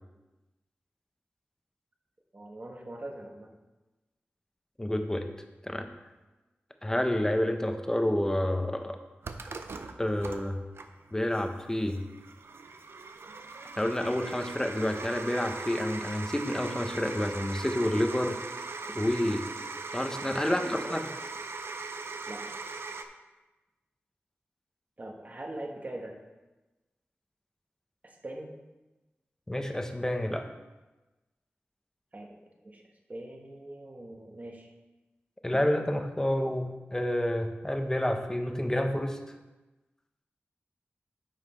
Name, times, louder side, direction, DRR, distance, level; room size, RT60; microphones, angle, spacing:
voice 1, 2.3-3.5 20.5-21.0 22.3-22.5 25.0-26.1 28.0-28.5 32.1-32.4 32.6-32.8 33.1-34.7, right 1 dB, 40° right, 1 dB, 1.3 m, -42 dB
voice 2, 4.8-5.3 5.6-5.9 6.8-9.0 10.0-10.6 11.1-12.0 13.8-18.4 18.9-19.5 19.9-21.0 29.5-30.5 35.4-39.2, left 1 dB, 15° left, 5 dB, 0.8 m, -29 dB
sound 1, 9.2-23.0, right 4 dB, 80° right, 0.6 m, -40 dB
10.0 x 5.8 x 4.3 m, 1.1 s
wide cardioid pair, 90°, 4 cm